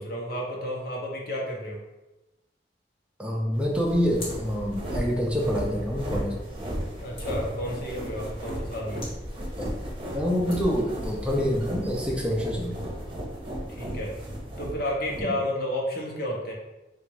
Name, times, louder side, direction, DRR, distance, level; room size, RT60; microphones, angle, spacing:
voice 1, 0.0-1.8 7.0-9.1 13.7-14.2 14.6-16.5, left 1 dB, 60° left, -2 dB, 1.0 m, -31 dB
voice 2, 3.2-6.3 9.6-9.8 10.1-12.9 15.2-15.4, equal, 5° right, -2 dB, 0.6 m, -27 dB
sound 1, 3.5-12.1, equal, 30° left, 1.5 m, -45 dB
sound 2, 3.9-15.2, equal, 30° right, 1.0 m, -35 dB
4.0 x 2.5 x 4.7 m, 1.0 s
head